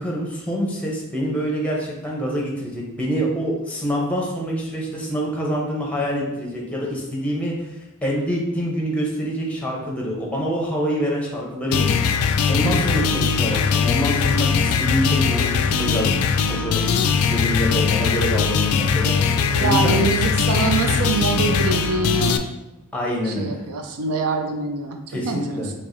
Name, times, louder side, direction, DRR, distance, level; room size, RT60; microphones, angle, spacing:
voice 1, 0.0-7.7 8.0-16.1 16.5-20.0 22.9-23.6 25.1-25.7, equal, 5° left, -2 dB, 0.7 m, -26 dB
sound 1, 11.7-22.4, left 6 dB, 70° left, 0.3 m, -20 dB
voice 2, 19.5-22.4 23.2-25.7, right 3 dB, 80° right, 4 dB, 0.5 m, -24 dB
4.5 x 2.9 x 2.6 m, 0.95 s
head